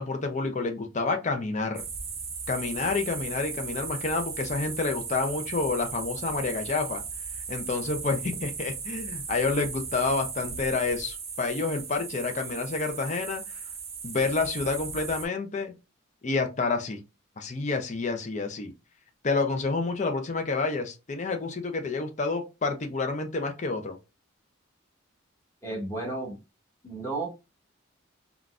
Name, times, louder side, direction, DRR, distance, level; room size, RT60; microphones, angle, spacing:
voice 1, 0.0-1.9 2.5-7.0 7.5-13.6 14.0-15.7 16.2-17.0 17.4-18.7 19.2-24.0, left 3 dB, 35° left, 0.5 m, -29 dB
sound 1, 1.7-15.2, right 5 dB, 30° right, 0.6 m, -37 dB
voice 2, 25.6-26.4 26.8-27.3, right 2 dB, 15° left, 1.2 m, -32 dB
3.7 x 2.3 x 2.4 m
head